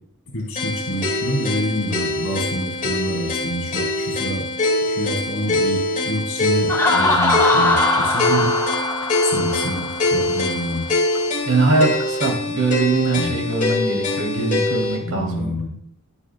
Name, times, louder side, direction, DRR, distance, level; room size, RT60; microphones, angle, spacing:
voice 1, 0.3-4.5 4.8-8.2 9.2-10.9 13.1-13.3 15.0-15.8, equal, 60° left, -4 dB, 5.1 m, -27 dB
sound 1, 0.6-15.0, left 2 dB, 35° left, 2.5 m, -23 dB
Laughter, 6.7-10.4, left 2 dB, 15° left, 1.6 m, -21 dB
voice 2, 11.5-15.5, right 3 dB, 70° right, 0 dB, 3.5 m, -21 dB
24.0 x 8.3 x 2.4 m, 0.67 s
head